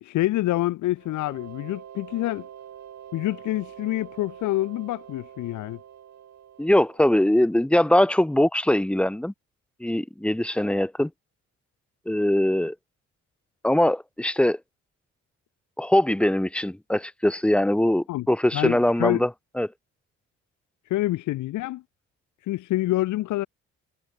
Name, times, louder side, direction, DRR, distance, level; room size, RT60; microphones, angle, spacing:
voice 1, 0.0-2.5 3.1-5.8 18.1-18.3 18.5-19.2 20.9-21.8 22.5-23.5, left 16 dB, 80° left, 0.8 m, -27 dB
sound 1, 1.0-7.6, right 10 dB, 60° right, 3.3 m, -45 dB
voice 2, 6.6-9.3 9.8-11.1 12.1-12.7 13.6-14.6 15.8-19.3 19.6-19.7, left 1 dB, 5° left, 0.8 m, -22 dB
cardioid pair, 90°, 30 cm